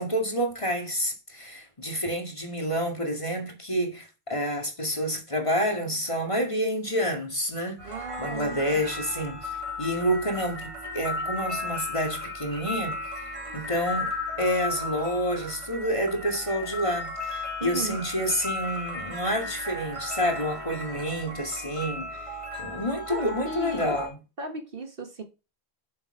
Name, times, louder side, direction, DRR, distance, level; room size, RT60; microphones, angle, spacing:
voice 1, 0.0-13.0 13.2-14.1 14.4-24.2, equal, 30° left, 2.2 m, -29 dB
sound 1, 7.8-24.1, left 2 dB, 30° right, 2.8 m, -35 dB
voice 2, 7.8-8.8 17.6-18.0 23.1-24.0 24.4-25.2, right 3 dB, 55° right, 1.7 m, -35 dB
9.6 x 7.1 x 3.9 m
omnidirectional pair, 1.1 m